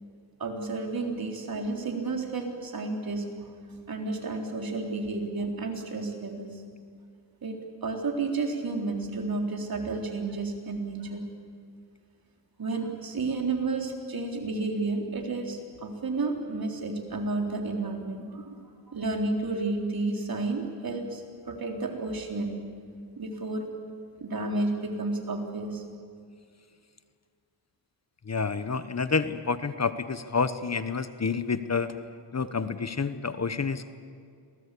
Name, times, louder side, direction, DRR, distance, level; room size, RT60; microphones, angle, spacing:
voice 1, 0.4-3.5 3.9-6.6 7.4-11.3 12.6-22.6 23.2-23.7 24.2-25.8, right 3 dB, 55° right, 2 dB, 4.0 m, -31 dB
voice 2, 28.2-32.0 32.3-33.9, left 5 dB, 40° left, 12 dB, 1.1 m, -29 dB
27.0 x 18.5 x 8.5 m, 2.2 s
cardioid pair, 80°, 42 cm